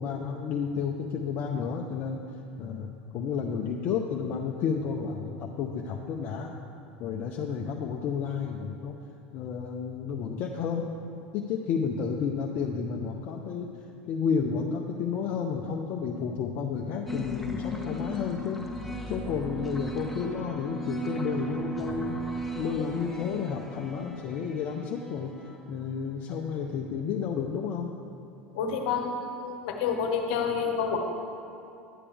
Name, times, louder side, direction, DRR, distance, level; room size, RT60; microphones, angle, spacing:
voice 1, 0.0-2.2 2.6-6.5 7.0-8.9 9.3-10.9 11.3-13.7 14.1-18.6 19.1-22.2 22.5-25.3 25.7-27.9, left 6 dB, 50° left, 1 dB, 0.6 m, -31 dB
sound 1, 17.1-26.1, right 1 dB, ahead, 1.1 m, -36 dB
voice 2, 28.5-31.0, left 6 dB, 65° left, 3 dB, 1.1 m, -29 dB
11.0 x 8.4 x 3.4 m, 2.6 s
hypercardioid pair, 80°, 6 cm